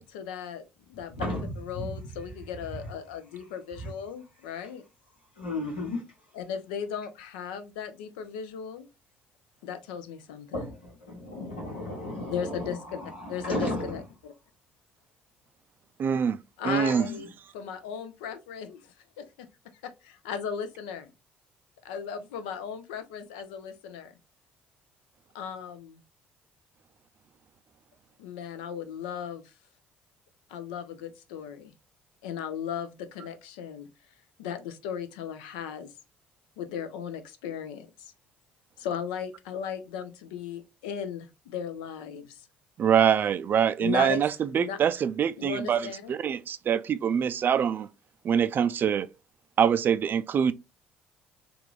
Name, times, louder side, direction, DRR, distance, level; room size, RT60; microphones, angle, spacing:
voice 1, 0.0-4.8 6.3-8.9 9.6-10.7 12.3-13.0 13.3-14.3 16.6-17.3 17.5-19.5 19.8-21.1 21.8-24.1 25.3-26.0 28.2-29.5 30.5-31.7 32.2-33.9 34.4-35.9 36.6-38.1 38.8-42.4 43.8-44.2 44.5-44.8 45.4-46.1, left 7 dB, 75° left, 0.5 m, -37 dB
voice 2, 1.1-1.8 3.8-3.9 5.4-6.0 10.5-14.0 17.0-17.3, left 1 dB, 90° left, 1.2 m, -34 dB
voice 3, 16.0-16.4 16.6-17.1 42.8-47.9 48.2-49.1 49.6-50.5, right 8 dB, 40° right, 0.3 m, -24 dB
3.5 x 2.4 x 3.1 m
figure-of-eight pair, 50°, 5 cm